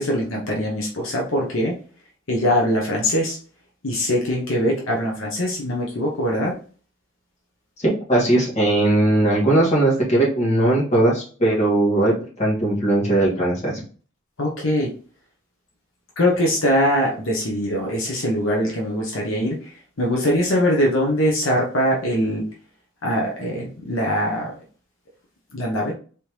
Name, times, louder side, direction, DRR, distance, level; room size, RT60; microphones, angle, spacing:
voice 1, 0.0-1.8 2.3-3.4 3.8-6.5 14.4-14.9 16.2-19.7 20.0-22.4 23.0-24.5 25.5-25.9, equal, 80° left, -1 dB, 1.0 m, -22 dB
voice 2, 7.8-13.8, right 1 dB, 35° left, -4 dB, 1.9 m, -19 dB
4.3 x 3.5 x 3.1 m, 0.40 s
head